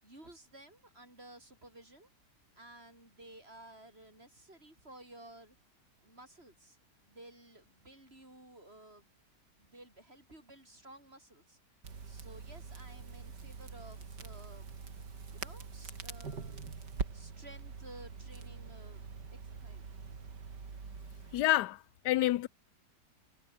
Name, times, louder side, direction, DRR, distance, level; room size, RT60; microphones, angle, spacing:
voice 1, 0.0-2.1 2.6-5.6 6.0-6.8 7.1-9.1 9.6-11.6 12.0-14.7 15.3-16.7 17.1-19.1 19.5-20.0, right 1 dB, 35° right, 7.5 m, -54 dB
Crackle, 11.8-21.4, right 5 dB, 85° right, 3.4 m, -44 dB
voice 2, 21.3-21.8 22.0-22.5, left 15 dB, 80° left, 1.2 m, -27 dB
omnidirectional pair, 1.8 m